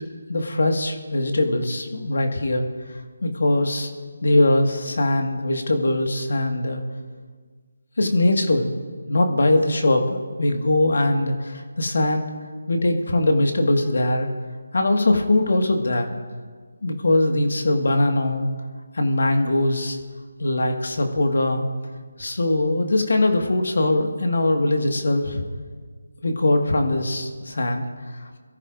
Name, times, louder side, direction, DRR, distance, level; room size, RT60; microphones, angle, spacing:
voice 1, 0.0-2.6 3.2-3.9 4.2-6.8 8.0-8.7 9.1-12.3 12.7-14.3 14.7-16.1 16.8-18.5 18.9-20.0 20.4-21.7 22.2-25.4 26.2-27.8 28.2-28.3, left 2 dB, 65° left, 4 dB, 1.7 m, -21 dB
22.5 x 14.0 x 2.6 m, 1.5 s
figure-of-eight pair, 155°, 0 cm